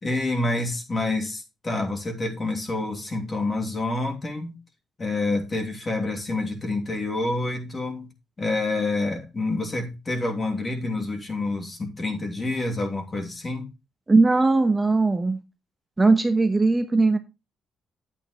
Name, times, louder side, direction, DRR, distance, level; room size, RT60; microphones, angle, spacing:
voice 1, 0.0-4.5 5.0-8.1 8.4-13.7, left 2 dB, 30° left, 2.8 m, -28 dB
voice 2, 14.1-15.4 16.0-17.2, right 3 dB, 20° right, 1.1 m, -19 dB
9.7 x 8.4 x 3.1 m
cardioid pair, 90°, 0 cm